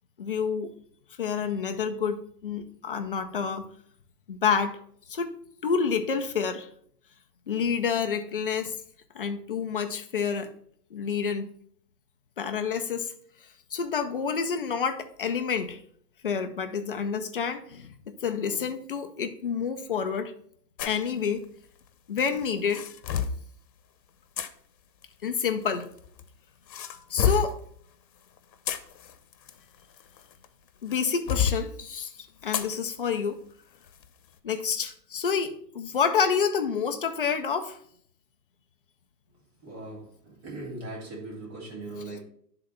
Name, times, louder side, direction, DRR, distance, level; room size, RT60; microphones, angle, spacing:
voice 1, 0.2-0.7 1.2-3.7 4.3-4.8 5.1-5.3 5.6-6.7 7.5-8.8 9.1-10.5 10.9-11.5 12.4-13.1 13.7-15.8 16.2-20.3 20.8-21.5 22.1-22.8 25.2-25.9 27.1-27.6 30.8-32.1 32.4-33.4 34.4-37.8 42.1-42.2, left 6 dB, 35° left, 0.4 m, -28 dB
sound 1, 20.8-21.0 22.2-23.4 24.4-24.5 25.6-26.2 26.7-27.6 28.4-30.5 30.9-31.6 32.5-32.7 33.2-33.3 33.9-34.1, left 7 dB, 85° left, 0.9 m, -29 dB
voice 2, 39.6-42.2, right 2 dB, 35° right, 3.2 m, -39 dB
9.9 x 3.8 x 4.2 m
hypercardioid pair, 160°, 50 cm